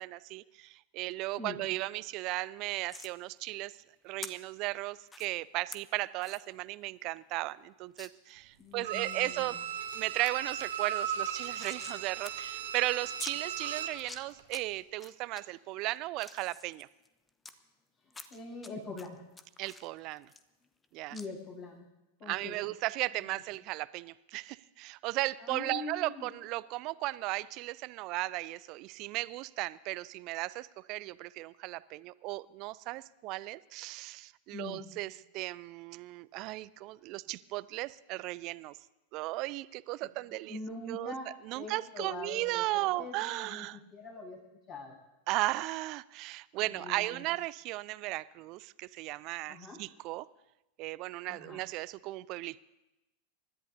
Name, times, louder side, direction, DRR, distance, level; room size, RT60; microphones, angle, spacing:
voice 1, 0.0-3.7 4.0-9.6 9.9-16.9 19.6-20.3 20.9-21.2 22.3-38.7 39.1-40.6 40.9-41.1 41.4-43.8 45.3-50.3 50.8-52.6, right 19 dB, 40° right, 20 dB, 0.4 m, -36 dB
sound 1, 2.9-3.1 4.2-4.3 5.1-5.3 5.7-5.8 6.2-6.4 6.8-6.9 7.2-7.3 8.0-8.1 8.6-9.1 9.6-10.0 10.3-10.4 10.6-12.0 12.2-12.3 12.6-12.7 13.2-13.4 13.9-14.6 15.0-15.4 15.9-17.5 18.1-18.7 19.0-20.9 21.1-21.3, left 3 dB, 15° left, 0.8 m, -46 dB
voice 2, 8.6-9.6 18.0-19.2 21.1-21.9 22.2-22.6 25.4-26.3 34.5-34.8 40.0-41.3 41.5-44.4 44.7-45.0 46.6-47.3 49.5-49.8 51.3-51.6, left 3 dB, 40° left, -2 dB, 7.4 m, -44 dB
Bowed string instrument, 8.8-14.0 14.4-14.5, right 8 dB, 60° right, 1.1 m, -37 dB
28.5 x 13.5 x 2.7 m, 0.97 s
figure-of-eight pair, 90°, 0 cm